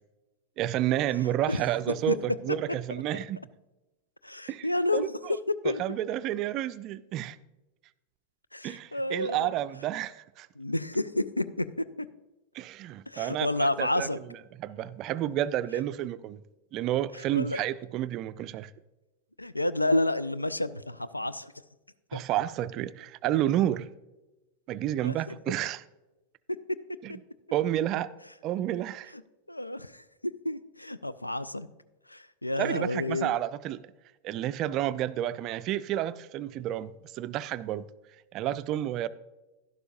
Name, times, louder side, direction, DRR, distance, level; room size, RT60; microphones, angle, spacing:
voice 1, 0.6-3.4 4.5-4.7 4.9-5.4 5.6-7.4 8.6-10.5 12.5-14.1 14.6-16.4 16.7-18.7 22.1-23.9 24.7-25.8 27.0-27.1 27.5-28.1 28.4-29.1 32.6-33.8 34.2-37.8 38.3-39.1, right 12 dB, 35° right, 0.4 m, -30 dB
voice 2, 4.2-5.1 5.6-5.8 8.5-9.5 10.6-12.1 13.1-14.2 17.3-17.6 19.4-21.5 22.1-22.2 25.0-25.2 29.5-30.0 30.4-31.7 32.1-33.3, left 1 dB, 85° left, 0.4 m, -30 dB
11.5 x 11.5 x 2.6 m
figure-of-eight pair, 90°, 0 cm